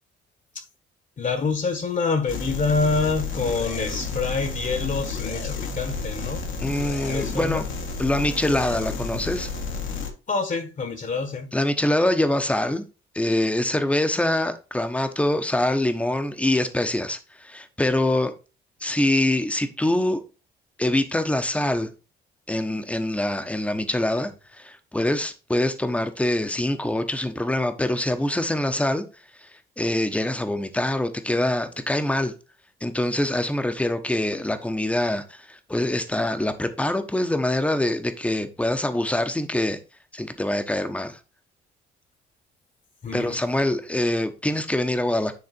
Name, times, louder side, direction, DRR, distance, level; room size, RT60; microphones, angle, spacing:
voice 1, 1.2-6.4 7.1-7.6 10.3-11.5 43.0-43.4, left 4 dB, 40° left, 1.5 m, -26 dB
sound 1, 2.3-10.1, left 4 dB, 75° left, 1.9 m, -31 dB
voice 2, 6.6-7.7 8.0-9.5 11.5-12.8 13.1-18.3 18.8-20.2 20.8-21.9 22.5-29.0 29.4-29.5 29.8-32.3 32.8-39.8 40.1-41.2 43.1-45.3, left 1 dB, 5° left, 1.1 m, -24 dB
9.7 x 3.3 x 4.4 m
cardioid pair, 90°, 20 cm